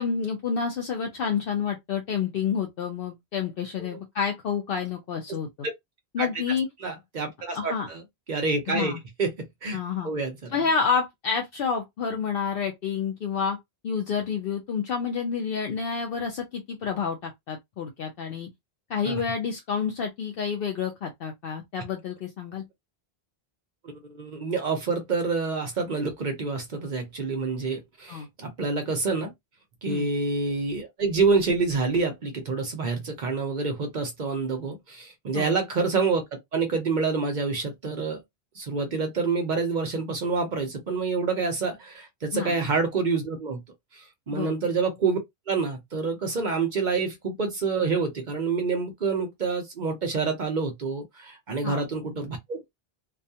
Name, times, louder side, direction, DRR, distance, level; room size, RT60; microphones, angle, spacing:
voice 1, 0.0-5.5 6.1-6.7 7.5-7.9 8.7-9.0 9.7-10.1 10.5-13.6 13.8-18.5 18.9-22.6 28.1-28.3 29.9-30.1 35.3-35.5 42.3-42.6 44.3-44.5 51.6-51.8, left 6 dB, 65° left, 0.7 m, -29 dB
voice 2, 6.8-8.0 8.3-8.9 9.2-9.3 9.6-9.8 10.0-10.6 19.1-19.2 24.1-29.3 29.8-38.2 38.5-43.6 44.3-45.2 45.5-52.7, right 4 dB, 50° right, 0.7 m, -27 dB
2.3 x 2.2 x 2.7 m
omnidirectional pair, 1.1 m